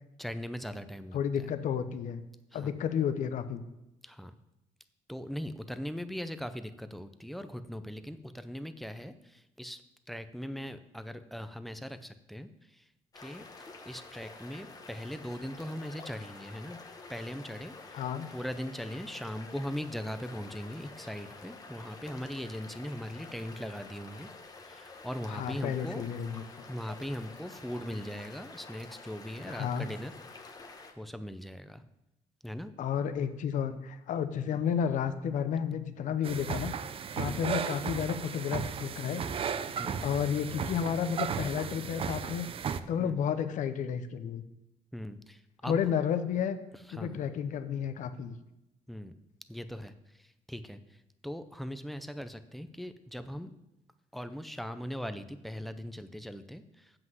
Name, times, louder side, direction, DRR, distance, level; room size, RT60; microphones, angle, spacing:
voice 1, 0.2-1.5 2.5-2.8 4.0-4.3 5.1-9.8 10.1-12.8 13.2-16.8 17.1-18.0 18.3-24.3 24.7-26.0 26.7-30.1 31.0-31.8 32.4-32.7 37.3-37.5 39.8-40.0 43.0-43.2 44.9-45.8 46.9-47.2 48.9-49.1 49.5-50.8 51.2-53.5 54.1-56.9, equal, ahead, 11 dB, 0.6 m, -40 dB
voice 2, 1.1-2.2 2.5-3.6 17.9-18.3 25.3-26.4 29.5-29.9 32.8-36.7 37.2-39.2 40.0-42.5 42.9-44.4 45.6-46.6 46.9-48.3, left 8 dB, 70° left, 10 dB, 0.7 m, -31 dB
sound 1, 13.1-30.9, left 3 dB, 30° left, 1.1 m, -49 dB
sound 2, 36.2-42.8, right 7 dB, 45° right, 0.5 m, -35 dB
7.7 x 5.9 x 7.6 m, 0.90 s
cardioid pair, 125°, 14 cm